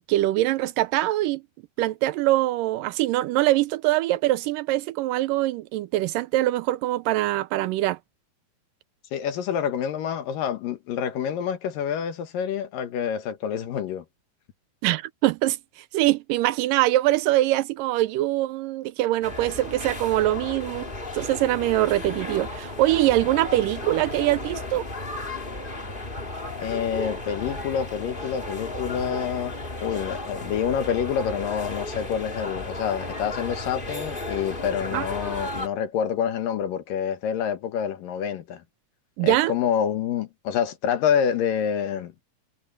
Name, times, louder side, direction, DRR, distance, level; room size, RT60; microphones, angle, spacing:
voice 1, 0.0-1.4 1.8-8.0 14.8-20.9 21.1-24.9 34.9-35.1 39.2-39.5, right 16 dB, 85° right, 2.3 m, -23 dB
voice 2, 9.1-14.0 26.6-29.5 29.8-38.6 39.2-42.1, left 8 dB, 80° left, 3.1 m, -27 dB
sound 1, 19.2-35.7, left 2 dB, 20° left, 2.0 m, -34 dB
omnidirectional pair, 3.9 m